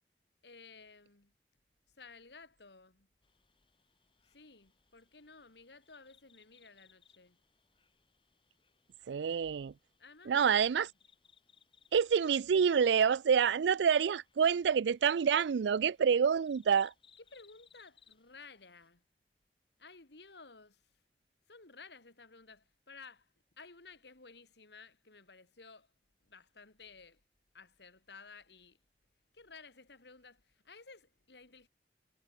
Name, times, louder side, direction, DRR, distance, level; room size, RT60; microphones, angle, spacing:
voice 1, 0.4-1.3 1.9-3.1 4.2-7.4 10.0-10.7 17.3-19.0 19.8-20.9 21.5-23.3 23.6-25.9 26.2-27.2 27.5-28.8 29.3-31.7, left 4 dB, 70° left, 2.5 m, -55 dB
sound 1, 3.2-18.9, left 6 dB, 30° left, 7.6 m, -69 dB
voice 2, 9.1-9.7 10.3-10.9 11.9-16.9, right 7 dB, 80° right, 0.4 m, -27 dB
head